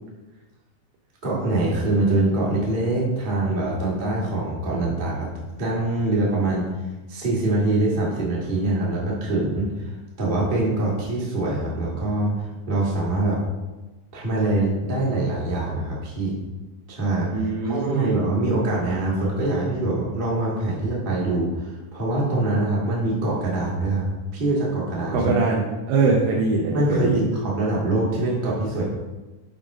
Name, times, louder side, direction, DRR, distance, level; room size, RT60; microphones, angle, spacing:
voice 1, 1.2-5.3 5.6-6.7 7.1-9.9 10.2-13.4 14.1-16.4 16.9-24.0 24.3-25.3 26.7-28.8, right 2 dB, 40° right, -5 dB, 0.7 m, -24 dB
voice 2, 17.3-18.1 25.1-27.3, right 4 dB, 90° right, -2 dB, 2.6 m, -22 dB
7.1 x 5.1 x 3.6 m, 1.1 s
omnidirectional pair, 4.0 m